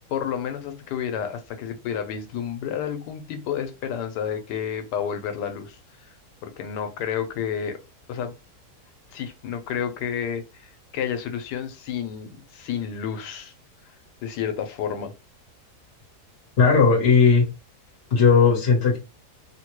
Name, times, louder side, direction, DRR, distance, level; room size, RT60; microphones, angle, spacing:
voice 1, 0.0-6.1 6.4-7.8 8.1-8.3 9.1-13.5 14.2-15.1, left 8 dB, 90° left, 1.2 m, -30 dB
voice 2, 16.6-17.4 18.1-19.0, left 5 dB, 45° left, 1.2 m, -16 dB
3.3 x 2.1 x 2.9 m
omnidirectional pair, 1.7 m